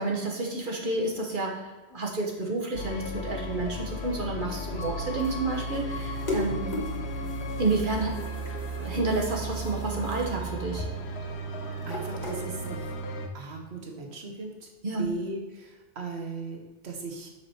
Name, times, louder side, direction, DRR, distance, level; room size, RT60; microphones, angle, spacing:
voice 1, 0.0-6.7 7.6-8.3 8.8-10.9 14.8-15.1, right 3 dB, 50° right, 0 dB, 1.1 m, -30 dB
sound 1, 2.7-13.3, right 1 dB, 70° left, 1.1 m, -35 dB
sound 2, 3.4-12.8, right 1 dB, 30° right, 1.5 m, -48 dB
sound 3, 3.6-13.0, left 2 dB, 40° left, 1.4 m, -40 dB
voice 2, 11.9-12.9 13.3-14.7 15.0-17.3, right 3 dB, 70° right, 2 dB, 1.4 m, -38 dB
6.1 x 5.9 x 4.4 m, 1.2 s
omnidirectional pair, 1.2 m